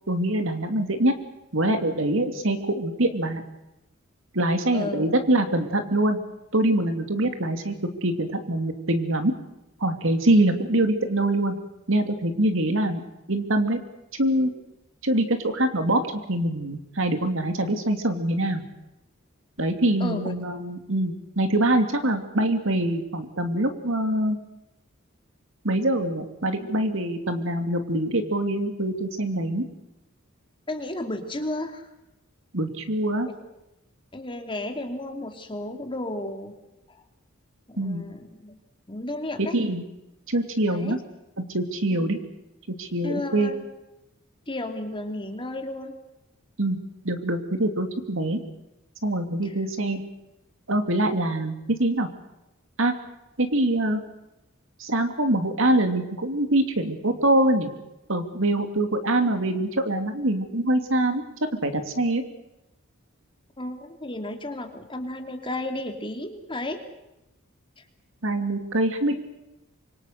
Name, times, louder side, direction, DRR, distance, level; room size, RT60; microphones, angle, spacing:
voice 1, 0.1-1.1 1.5-3.4 4.3-6.2 6.5-7.7 8.0-9.3 9.8-11.5 11.9-13.0 13.3-13.8 14.2-14.5 15.0-18.6 19.6-24.4 25.6-29.7 32.5-33.3 37.8-38.0 39.4-39.8 40.3-41.0 41.4-42.2 42.8-43.5 46.6-46.8 47.0-48.4 49.0-50.0 50.7-52.1 52.8-52.9 53.4-54.0 54.8-57.7 58.1-61.2 61.6-62.2 68.2-69.2, right 1 dB, 65° right, 7 dB, 2.8 m, -24 dB
voice 2, 4.7-5.1 20.0-20.4 30.7-31.9 33.2-33.3 34.1-36.5 36.9-37.0 37.7-38.6 38.9-39.6 40.7-41.0 41.9-42.0 43.0-43.6 44.5-45.9 49.4-49.6 63.6-66.8 67.8-67.9, left 1 dB, 25° left, 5 dB, 2.8 m, -33 dB
26.0 x 24.0 x 6.7 m, 0.93 s
head